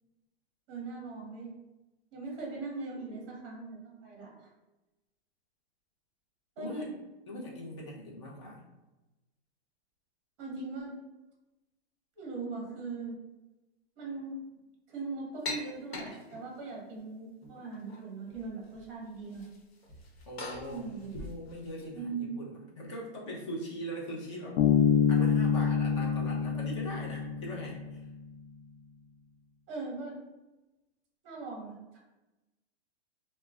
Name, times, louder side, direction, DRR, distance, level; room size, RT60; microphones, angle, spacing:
voice 1, 0.7-1.5 2.1-4.5 6.6-6.9 10.4-11.0 12.2-13.2 14.0-14.4 14.9-19.5 20.7-21.4 21.9-22.3 29.7-30.2 31.2-32.0, right 3 dB, 25° right, -2 dB, 0.8 m, -40 dB
voice 2, 6.6-6.9 7.3-8.6 20.3-20.9 21.2-24.6 25.1-28.0, equal, 30° left, -3 dB, 0.5 m, -41 dB
sound 1, 15.4-16.7 17.4-18.0 18.3-18.9 19.1-21.8, left 2 dB, 65° left, 1.0 m, -42 dB
Bass guitar, 24.6-28.0, left 6 dB, 90° left, 0.6 m, -26 dB
2.3 x 2.0 x 3.3 m, 1.0 s
hypercardioid pair, 170°, 33 cm